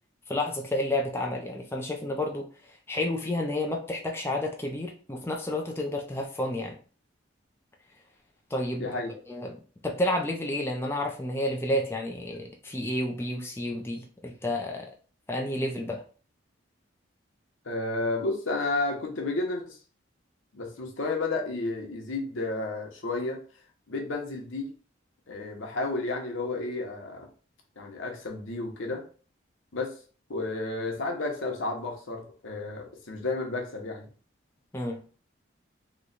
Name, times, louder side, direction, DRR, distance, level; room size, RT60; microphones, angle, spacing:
voice 1, 0.3-2.5 2.9-6.7 8.5-9.0 9.3-9.6 9.8-14.9 15.3-16.0 34.7-35.0, left 1 dB, 10° left, 0 dB, 0.4 m, -30 dB
voice 2, 8.8-9.1 17.6-19.8 20.5-23.4 23.9-24.7 25.3-27.3 27.8-29.1 29.7-30.0 30.3-34.1, left 2 dB, 90° left, 2 dB, 0.9 m, -32 dB
3.1 x 2.2 x 3.9 m, 0.39 s
head